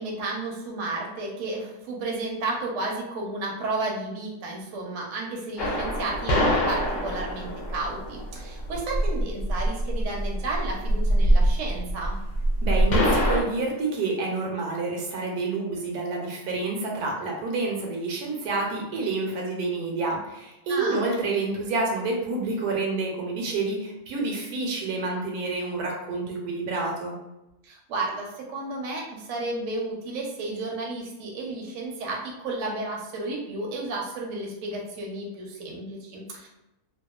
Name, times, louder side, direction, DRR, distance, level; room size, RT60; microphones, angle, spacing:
voice 1, 0.0-12.2 20.7-21.0 27.6-36.5, right 2 dB, 65° right, -2 dB, 0.9 m, -32 dB
sound 1, 5.6-13.4, equal, 65° left, 0.8 m, -24 dB
voice 2, 12.6-27.1, right 3 dB, 80° right, -1 dB, 1.1 m, -28 dB
2.7 x 2.2 x 2.3 m, 0.95 s
omnidirectional pair, 1.7 m